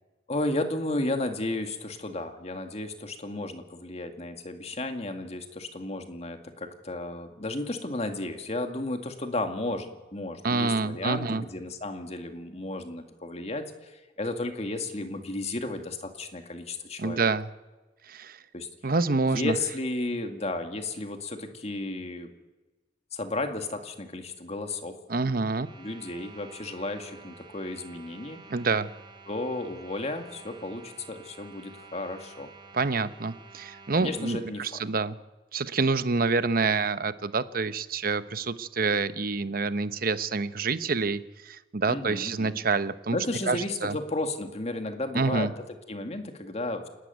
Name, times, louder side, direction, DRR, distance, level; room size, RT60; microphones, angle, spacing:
voice 1, 0.3-17.3 18.5-18.7 19.3-22.3 23.1-25.0 25.8-28.4 29.3-32.5 34.0-34.8 41.9-42.6 43.1-46.9, left 2 dB, 40° left, 6 dB, 2.2 m, -33 dB
voice 2, 10.4-11.4 17.0-17.5 18.1-18.4 18.8-19.6 25.1-25.7 28.5-28.9 32.7-35.1 35.5-43.2 43.5-44.0 45.1-45.5, right 4 dB, 55° right, 13 dB, 0.9 m, -27 dB
sound 1, 25.5-34.4, right 4 dB, 30° right, 3.0 m, -50 dB
28.0 x 12.5 x 9.4 m, 1.2 s
head